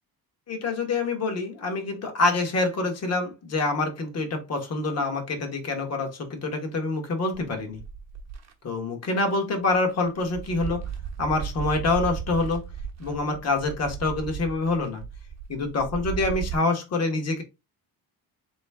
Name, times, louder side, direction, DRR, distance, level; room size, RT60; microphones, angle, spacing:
voice 1, 0.5-7.8 8.6-10.8 11.2-12.7 13.0-15.0 15.5-17.4, left 3 dB, 40° left, 1.4 m, -26 dB
Crunchy Footsteps in snow, 7.3-8.5 9.2-9.4 9.7-16.6, right 8 dB, 40° right, 1.0 m, -36 dB
3.8 x 3.1 x 3.5 m
cardioid pair, 145°, 39 cm